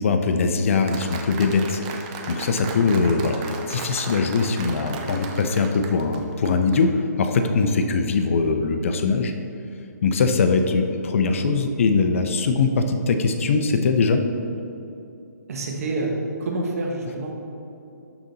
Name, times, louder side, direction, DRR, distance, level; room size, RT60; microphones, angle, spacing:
voice 1, 0.0-1.8 2.3-9.3 10.0-14.2, left 4 dB, 45° left, 6 dB, 0.6 m, -21 dB
Applause, 0.9-6.8, right 4 dB, 20° right, 0.5 m, -36 dB
voice 2, 15.5-16.1 16.4-17.3, right 2 dB, 55° right, 0 dB, 1.4 m, -28 dB
12.0 x 3.9 x 4.0 m, 2.7 s
hypercardioid pair, 160°, 10 cm